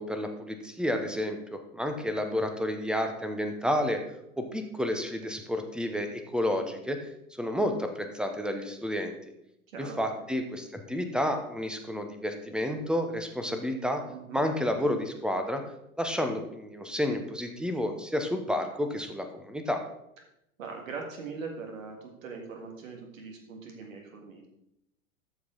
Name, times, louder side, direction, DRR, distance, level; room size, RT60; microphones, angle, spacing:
voice 1, 0.0-4.0 4.4-7.1 7.4-9.1 9.8-14.0 14.3-15.6 16.0-19.8, left 1 dB, ahead, 6 dB, 0.8 m, -30 dB
voice 2, 9.7-10.0 14.1-14.4 20.6-24.5, right 4 dB, 65° right, 2 dB, 2.0 m, -41 dB
13.0 x 4.8 x 3.9 m, 0.79 s
figure-of-eight pair, 95°, 43 cm